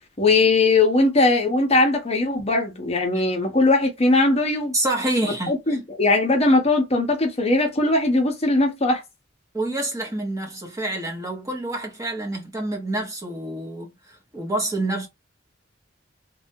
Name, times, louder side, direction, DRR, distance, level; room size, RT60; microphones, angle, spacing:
voice 1, 0.2-4.7 5.2-9.0, left 2 dB, 35° left, 0.8 m, -20 dB
voice 2, 4.7-5.6 9.5-15.1, right 1 dB, 20° right, 0.9 m, -27 dB
3.2 x 2.3 x 2.7 m
head